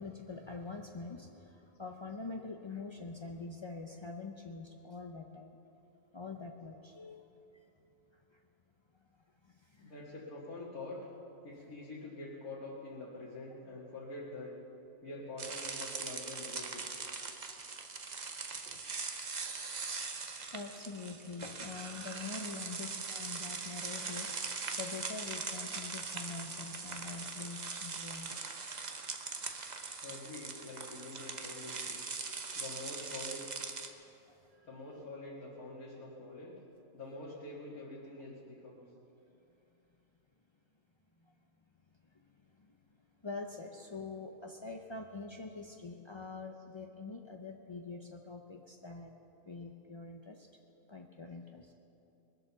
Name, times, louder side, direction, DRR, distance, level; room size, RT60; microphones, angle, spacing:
voice 1, 0.0-5.6 6.1-7.3 7.5-7.6 8.1-8.4 9.0-9.1 9.4-9.9 18.6-18.8 20.5-28.3 34.3-35.0 41.2-41.3 42.0-43.0 43.2-49.1 49.5-50.5 50.9-51.7, left 4 dB, 50° left, 2 dB, 0.3 m, -45 dB
voice 2, 9.8-11.0 11.4-14.6 15.0-16.9 30.0-32.0 32.6-33.5 34.6-36.5 36.9-38.8 46.5-46.6, left 2 dB, 75° left, -6 dB, 2.4 m, -46 dB
sound 1, 15.4-33.9, right 4 dB, 35° right, 0.8 m, -41 dB
21.0 x 7.9 x 6.9 m, 2.8 s
omnidirectional pair, 1.5 m